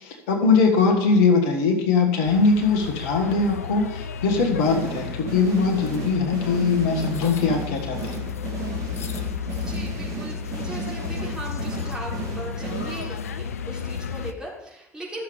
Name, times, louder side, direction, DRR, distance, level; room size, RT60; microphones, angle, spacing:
voice 1, 0.0-8.3, left 4 dB, 60° left, 3 dB, 1.6 m, -21 dB
sound 1, 2.2-14.3, left 6 dB, 75° left, 0.4 m, -32 dB
sound 2, 4.6-13.4, right 5 dB, 40° right, 1.8 m, -35 dB
voice 2, 9.2-15.2, right 1 dB, 10° right, -4 dB, 3.4 m, -38 dB
13.5 x 6.7 x 3.5 m, 0.85 s
figure-of-eight pair, 65°, 8 cm